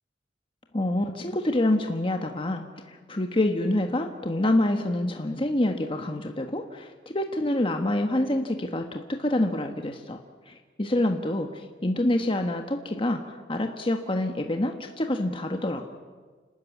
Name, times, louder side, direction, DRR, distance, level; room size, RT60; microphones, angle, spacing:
voice 1, 0.7-10.2 10.5-15.9, left 1 dB, 30° left, 4 dB, 1.4 m, -27 dB
29.5 x 13.5 x 9.6 m, 1.4 s
head